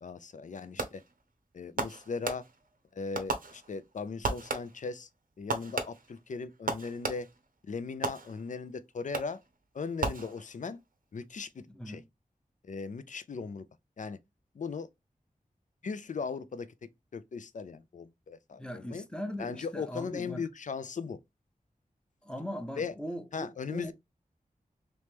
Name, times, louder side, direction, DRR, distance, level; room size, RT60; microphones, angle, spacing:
voice 1, 0.0-1.0 1.5-2.5 2.9-5.1 5.4-7.3 7.6-9.4 9.7-10.8 11.1-12.0 12.6-13.7 14.0-14.2 14.5-14.9 15.8-19.0 19.4-21.2 22.8-22.9 23.3-23.9, left 5 dB, 60° left, 0.4 m, -38 dB
Fireworks, 0.8-1.2 1.8-2.8 3.1-3.9 4.2-4.9 5.5-7.5 8.0-8.7 9.1-9.5 10.0-10.8, right 3 dB, 70° right, 0.7 m, -36 dB
voice 2, 11.7-12.1 18.6-20.4 22.2-23.9, equal, 5° left, 0.6 m, -40 dB
3.1 x 3.0 x 3.3 m
wide cardioid pair, 85°, 15 cm